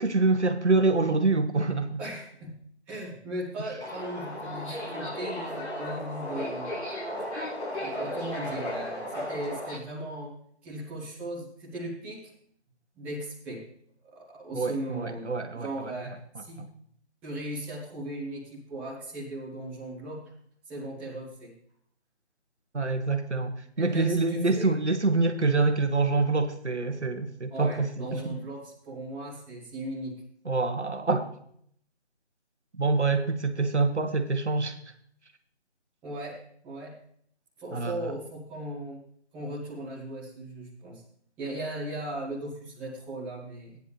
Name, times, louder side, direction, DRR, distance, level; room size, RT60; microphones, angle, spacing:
voice 1, 0.0-2.0 14.5-15.9 16.6-16.7 22.7-28.4 30.4-31.3 32.8-34.9 37.7-38.0, right 3 dB, 90° right, 6 dB, 1.7 m, -26 dB
voice 2, 2.0-2.5 2.9-6.7 7.8-10.3 10.6-12.3 12.9-13.6 14.0-15.3 15.5-16.1 16.4-16.6 17.2-20.2 20.7-21.5 23.8-24.7 27.5-30.2 36.0-36.4 36.6-36.9 37.6-39.0 39.3-41.0 41.4-43.8, right 1 dB, 5° right, -9 dB, 1.3 m, -37 dB
Subway metro underground, 3.8-9.8, left 1 dB, 85° left, 4.2 m, -35 dB
14.0 x 10.0 x 3.3 m, 0.65 s
figure-of-eight pair, 165°, 33 cm